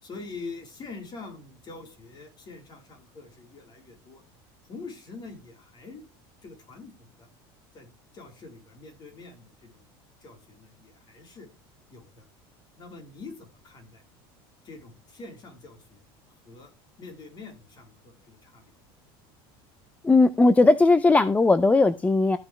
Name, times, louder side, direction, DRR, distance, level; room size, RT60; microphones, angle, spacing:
voice 1, 0.0-4.2 4.6-6.0 6.4-7.3 7.7-9.9 10.2-11.5 11.9-12.3 12.8-14.0 14.6-16.7 17.0-18.7, left 3 dB, 35° left, 3 dB, 3.7 m, -45 dB
voice 2, 20.0-22.4, left 3 dB, 10° left, 13 dB, 0.5 m, -18 dB
14.0 x 6.3 x 3.2 m, 0.31 s
supercardioid pair, 125°, 13 cm